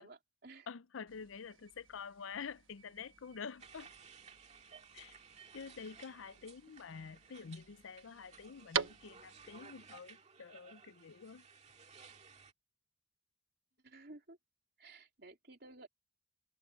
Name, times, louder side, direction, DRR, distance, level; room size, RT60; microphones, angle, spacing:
voice 1, 0.0-0.7 13.8-14.4 14.8-15.9, right 2 dB, 50° right, 3.4 m, -55 dB
voice 2, 0.7-3.9 4.9-5.2 5.5-11.5, left 6 dB, 80° left, 0.5 m, -48 dB
sound 1, 1.1-9.6, right 7 dB, 80° right, 1.1 m, -46 dB
sound 2, 3.6-12.5, right 6 dB, 35° right, 1.9 m, -58 dB
open air
head